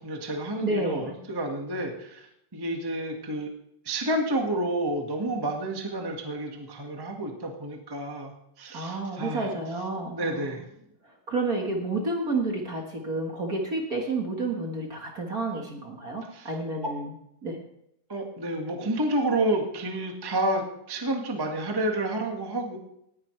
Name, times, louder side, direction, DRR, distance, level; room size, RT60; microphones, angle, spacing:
voice 1, 0.0-3.5 3.8-9.5 10.1-10.6 16.3-16.5 18.1-22.8, right 1 dB, 15° right, 2 dB, 0.9 m, -30 dB
voice 2, 0.6-1.2 8.7-10.5 11.0-17.1 17.4-17.6, right 2 dB, 40° right, 1 dB, 1.5 m, -30 dB
18.5 x 10.5 x 3.3 m, 0.76 s
omnidirectional pair, 3.4 m